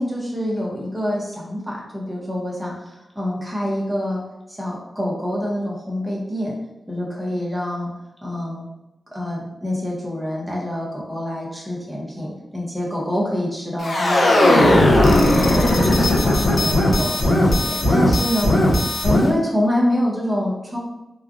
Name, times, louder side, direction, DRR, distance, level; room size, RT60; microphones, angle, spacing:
voice 1, 0.0-4.2 4.5-6.5 6.9-7.9 8.2-8.7 9.1-18.6 19.0-20.8, left 1 dB, 15° right, -4 dB, 1.0 m, -26 dB
sound 1, 13.8-19.3, left 1 dB, 65° left, 0.6 m, -17 dB
3.2 x 2.3 x 2.5 m, 0.94 s
cardioid pair, 65°, 0 cm